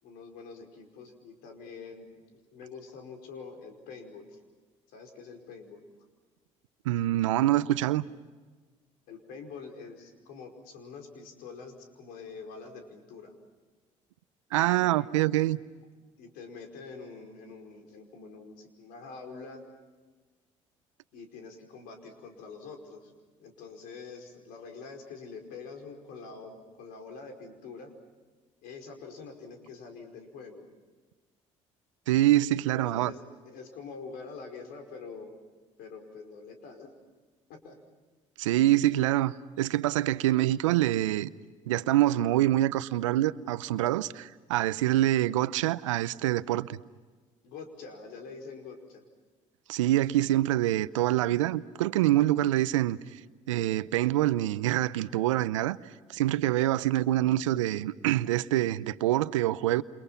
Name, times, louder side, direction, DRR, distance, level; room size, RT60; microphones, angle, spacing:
voice 1, 0.0-4.4 4.9-5.8 9.1-13.3 14.6-15.1 15.8-15.9 16.2-19.6 21.1-23.1 23.4-27.9 28.6-30.7 32.7-35.3 35.8-36.9 37.5-37.8 47.4-49.0, left 4 dB, 70° left, 5.2 m, -45 dB
voice 2, 6.8-8.0 14.5-15.6 32.1-33.1 38.4-41.3 41.7-46.8 49.7-53.0 53.5-55.8 56.1-59.8, right 14 dB, 85° right, 0.7 m, -25 dB
30.0 x 29.0 x 5.8 m
hypercardioid pair, 55°, 16 cm